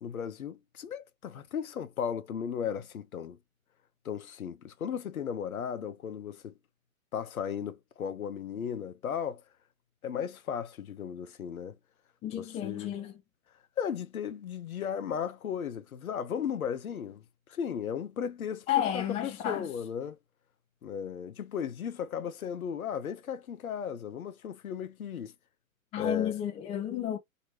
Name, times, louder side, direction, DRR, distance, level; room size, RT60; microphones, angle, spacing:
voice 1, 0.0-3.4 4.0-6.5 7.1-9.4 10.0-11.8 12.3-12.9 13.8-17.2 17.5-18.7 18.9-20.2 20.8-25.3 26.0-26.3, left 8 dB, 80° left, 0.8 m, -35 dB
voice 2, 12.2-13.1 18.7-19.7 25.9-27.2, left 10 dB, 15° left, 0.5 m, -31 dB
2.9 x 2.9 x 2.8 m
figure-of-eight pair, 115°, 42 cm